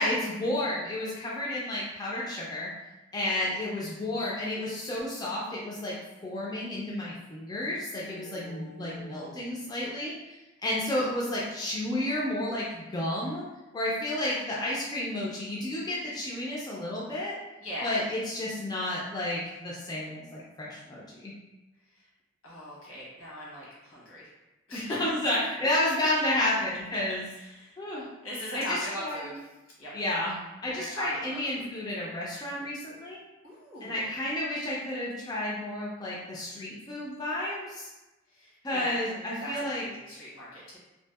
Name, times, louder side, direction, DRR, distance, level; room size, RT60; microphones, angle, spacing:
voice 1, 0.0-2.7 3.1-5.9 6.2-10.3 10.6-13.4 13.7-17.4 17.8-21.3 24.7-27.3 27.8-28.1 28.5-29.3 29.9-30.4 30.6-33.2 33.8-37.9 38.6-39.8, left 1 dB, 20° left, -5 dB, 0.3 m, -31 dB
voice 2, 8.0-9.4 17.6-17.9 21.9-22.1 22.4-24.3 24.7-25.0 27.3-27.8 28.2-29.3 29.8-29.9 30.7-31.7 33.4-34.0 38.3-40.8, left 1 dB, 85° left, -6 dB, 1.0 m, -40 dB
2.6 x 2.3 x 2.3 m, 1.0 s
head